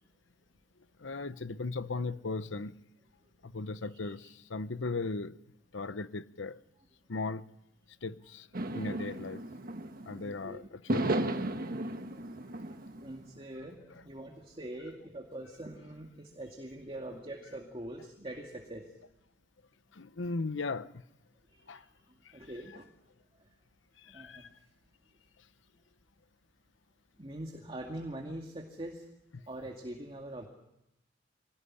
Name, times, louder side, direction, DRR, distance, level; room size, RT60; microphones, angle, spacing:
voice 1, 1.0-2.7 3.4-5.4 5.7-6.6 7.1-7.4 8.0-8.5 8.7-9.4 10.1-11.3 11.9-12.0 19.9-21.0 21.7-21.8 24.0-24.5, left 3 dB, 85° left, 0.9 m, -37 dB
sound 1, 8.5-10.3 10.9-13.1, right 1 dB, 50° right, 1.5 m, -34 dB
voice 2, 10.2-10.6 12.1-12.2 12.6-18.9 21.5-21.8 22.3-22.9 24.1-24.5 27.2-29.0 29.5-30.5, right 1 dB, 30° right, 2.3 m, -43 dB
25.0 x 18.5 x 9.9 m
head